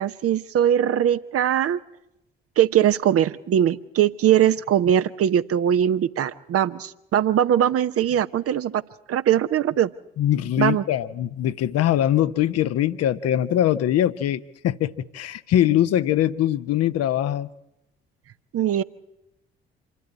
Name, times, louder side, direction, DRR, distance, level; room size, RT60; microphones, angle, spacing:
voice 1, 0.0-1.8 2.6-8.8 9.1-9.9 10.6-10.8 18.5-18.8, right 10 dB, 50° right, 0.8 m, -21 dB
voice 2, 10.2-17.5, left 11 dB, 55° left, 0.8 m, -22 dB
26.0 x 12.5 x 9.7 m
figure-of-eight pair, 45°, 30 cm